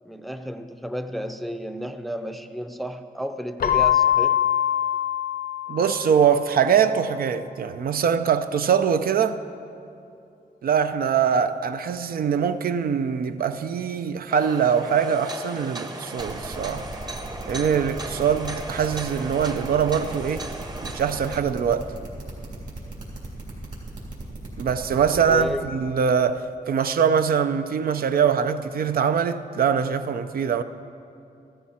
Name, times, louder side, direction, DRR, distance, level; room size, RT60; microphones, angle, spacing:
voice 1, 0.1-4.4 25.3-25.7, equal, ahead, 0.5 m, -32 dB
Keyboard (musical), 3.6-6.3, left 10 dB, 75° left, 0.7 m, -23 dB
voice 2, 5.7-9.4 10.6-16.9 17.5-20.5 20.8-21.9 24.6-30.6, right 7 dB, 85° right, 0.5 m, -23 dB
sound 1, 14.3-21.4, right 2 dB, 25° right, 0.9 m, -36 dB
sound 2, 16.2-25.6, right 2 dB, 60° right, 3.4 m, -37 dB
14.5 x 14.0 x 4.3 m
wide cardioid pair, 130°, 15 cm